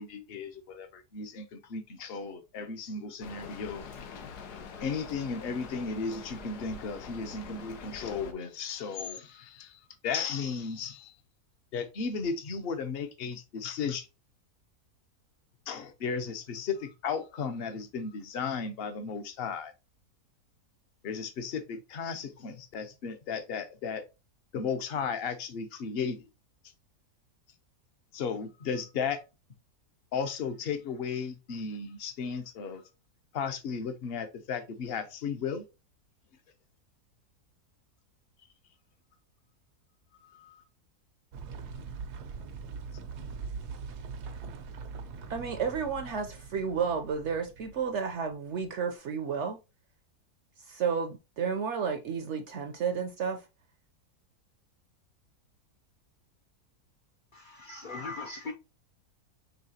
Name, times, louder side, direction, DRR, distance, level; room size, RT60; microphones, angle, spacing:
voice 1, 0.0-3.8 4.8-11.1 11.7-14.1 15.7-19.7 21.0-24.0 24.5-26.2 28.1-29.2 30.1-32.8 33.3-35.6 40.2-40.6, left 5 dB, 50° left, 0.8 m, -35 dB
Rain, 3.2-8.3, left 5 dB, 90° left, 1.3 m, -44 dB
sound 1, 41.3-48.7, right 5 dB, 80° right, 1.3 m, -42 dB
voice 2, 45.3-49.6 50.7-53.4, right 6 dB, 60° right, 0.8 m, -32 dB
voice 3, 57.3-58.5, left 3 dB, 70° left, 0.4 m, -39 dB
5.6 x 3.3 x 2.7 m
omnidirectional pair, 1.6 m